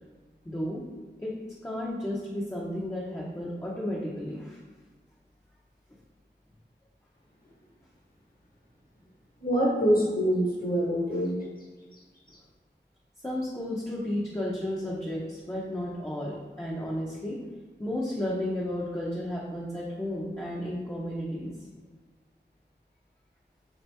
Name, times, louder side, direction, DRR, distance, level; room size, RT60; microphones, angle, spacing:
voice 1, 0.4-0.8 1.2-1.3 1.6-4.6 13.2-17.4 17.8-21.5, left 1 dB, 15° left, -5 dB, 0.7 m, -33 dB
voice 2, 9.4-11.4 12.3-12.4, equal, 50° left, -5 dB, 1.3 m, -25 dB
3.6 x 2.8 x 3.4 m, 1.4 s
wide cardioid pair, 50°, 19 cm